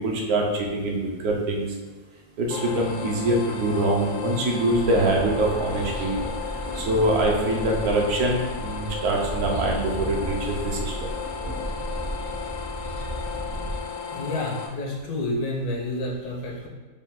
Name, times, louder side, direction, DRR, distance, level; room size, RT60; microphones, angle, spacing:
voice 1, 0.0-1.7 2.4-6.2 6.7-11.1, right 1 dB, 70° right, 0 dB, 1.2 m, -24 dB
sound 1, 2.5-14.7, left 6 dB, 65° left, 0.8 m, -34 dB
sound 2, 4.7-13.8, right 1 dB, 50° right, 0.6 m, -34 dB
voice 2, 14.1-16.7, left 1 dB, 80° left, -1 dB, 1.4 m, -29 dB
5.4 x 2.3 x 3.7 m, 1.4 s
omnidirectional pair, 1.6 m